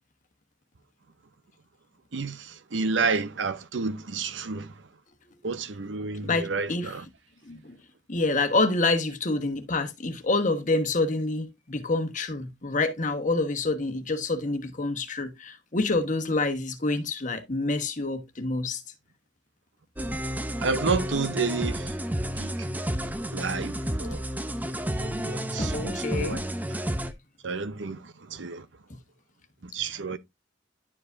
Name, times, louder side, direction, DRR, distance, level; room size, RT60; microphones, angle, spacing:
voice 1, 2.1-4.7 5.4-7.0 20.6-22.0 22.4-22.7 23.3-24.2 25.0-26.4 26.7-26.8 27.4-28.7 29.6-30.2, right 4 dB, 85° right, 0.8 m, -30 dB
voice 2, 6.2-6.9 7.5-7.8 8.1-18.8 25.6-26.4, left 3 dB, 45° left, 1.2 m, -27 dB
sound 1, 20.0-27.1, equal, 10° right, 0.6 m, -31 dB
11.0 x 4.9 x 2.6 m
head